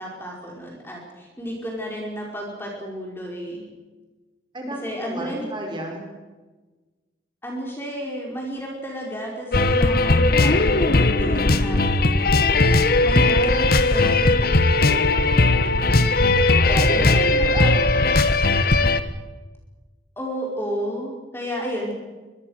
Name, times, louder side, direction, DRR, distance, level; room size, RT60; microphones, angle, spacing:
voice 1, 0.0-3.6 4.8-5.4 7.4-13.5 14.0-14.3 14.8-16.2 16.6-17.0 20.2-21.9, equal, 10° left, -1 dB, 5.0 m, -32 dB
voice 2, 4.5-6.2 13.2-14.3 16.6-18.2, right 1 dB, 25° right, 1 dB, 5.3 m, -33 dB
sound 1, 9.5-19.0, left 2 dB, 50° left, 1.3 m, -18 dB
25.0 x 22.0 x 6.6 m, 1.2 s
head